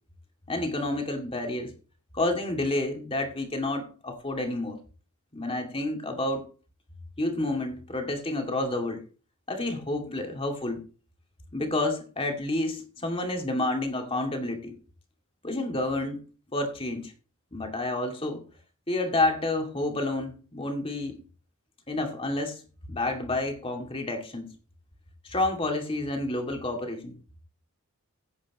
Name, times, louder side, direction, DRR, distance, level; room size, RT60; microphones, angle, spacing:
voice 1, 0.5-1.7 2.1-4.8 5.3-6.4 7.2-9.0 9.5-10.8 11.5-14.8 15.4-16.2 16.5-17.1 17.5-18.4 18.9-21.2 21.9-22.6 22.9-24.5 25.2-27.2, left 2 dB, 25° left, 2.3 m, -29 dB
16.5 x 8.6 x 3.0 m
head